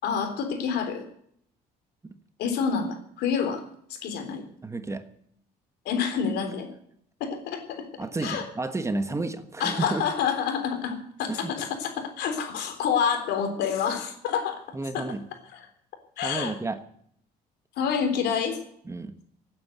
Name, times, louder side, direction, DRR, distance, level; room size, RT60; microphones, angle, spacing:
voice 1, 0.0-1.1 2.4-3.6 4.0-4.4 5.9-6.7 7.2-7.8 8.2-8.5 9.6-14.6 14.9-15.1 15.5-15.6 16.2-16.5 17.8-18.6, left 7 dB, 80° left, 6 dB, 3.7 m, -28 dB
voice 2, 4.6-5.1 8.0-10.0 11.3-11.5 14.7-15.3 16.2-16.8 18.9-19.1, right 3 dB, 15° right, 10 dB, 1.3 m, -31 dB
17.0 x 9.3 x 8.1 m, 0.68 s
cardioid pair, 110°, 17 cm